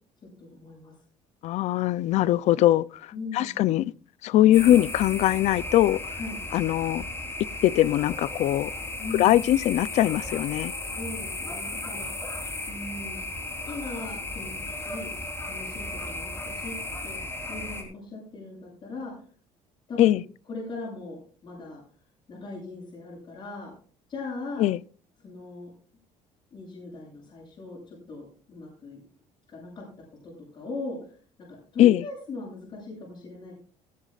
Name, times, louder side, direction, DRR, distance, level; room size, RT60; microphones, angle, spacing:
voice 1, 0.4-1.0 3.1-3.5 6.2-6.4 9.0-9.4 10.9-13.2 13.6-15.1 15.5-16.8 17.0-17.2 17.5-19.1 19.9-20.2 20.5-21.8 22.3-23.7 24.1-24.6 25.2-25.7 26.5-29.0 29.5-29.9 30.2-33.6, left 3 dB, 40° left, 7.6 m, -39 dB
voice 2, 1.4-3.9 4.2-6.2 6.5-7.1 7.6-8.7 9.2-10.7 20.0-20.2 24.6-24.8 31.8-32.0, left 14 dB, 60° left, 0.5 m, -21 dB
sound 1, 4.5-17.8, left 2 dB, 20° left, 4.0 m, -35 dB
17.5 x 14.0 x 2.5 m
cardioid pair, 145°, 13 cm